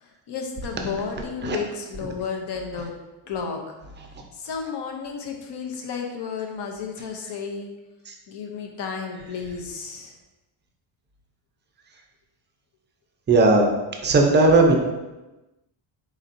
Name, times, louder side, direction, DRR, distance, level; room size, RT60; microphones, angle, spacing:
voice 1, 0.0-2.9 3.3-3.7 4.3-7.7 8.3-10.1, left 5 dB, 55° left, 2 dB, 0.8 m, -32 dB
voice 2, 13.3-13.7 14.0-14.7, right 2 dB, 20° right, 2 dB, 0.5 m, -16 dB
4.1 x 4.1 x 2.6 m, 1.1 s
cardioid pair, 140°, 50 cm